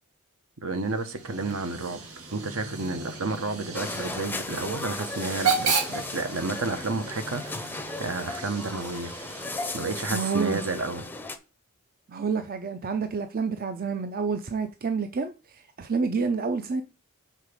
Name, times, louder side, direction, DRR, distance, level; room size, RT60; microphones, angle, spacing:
voice 1, 0.6-2.0 2.3-9.1 9.7-11.1, right 3 dB, 70° right, 1.1 m, -31 dB
Hiss / Train / Alarm, 0.7-10.4, right 5 dB, 90° right, 1.7 m, -34 dB
sound 1, 1.3-8.3, left 1 dB, 15° right, 0.8 m, -45 dB
sound 2, 3.7-11.4, left 2 dB, 10° left, 0.5 m, -36 dB
voice 2, 10.1-10.6 12.1-16.8, right 5 dB, 40° right, 0.5 m, -29 dB
6.6 x 4.0 x 5.1 m
head